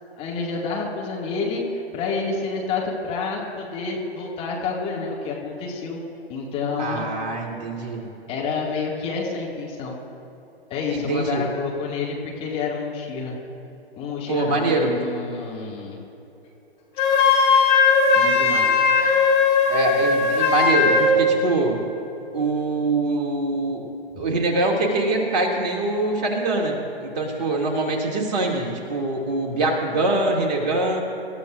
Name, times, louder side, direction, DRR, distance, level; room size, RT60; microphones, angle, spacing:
voice 1, 0.2-6.0 6.3-7.1 8.3-9.9 10.7-13.4 14.0-16.0 18.1-18.8 24.1-24.4, left 4 dB, 20° left, -3 dB, 2.1 m, -29 dB
voice 2, 6.8-8.1 10.9-11.4 14.3-15.0 19.7-21.8 22.3-23.9 24.2-31.0, right 2 dB, 40° right, 0 dB, 2.4 m, -24 dB
Wind instrument woodwind instrument, 17.0-21.2, left 4 dB, 45° left, 3.6 m, -18 dB
26.5 x 14.0 x 2.5 m, 3.0 s
figure-of-eight pair, 125°, 32 cm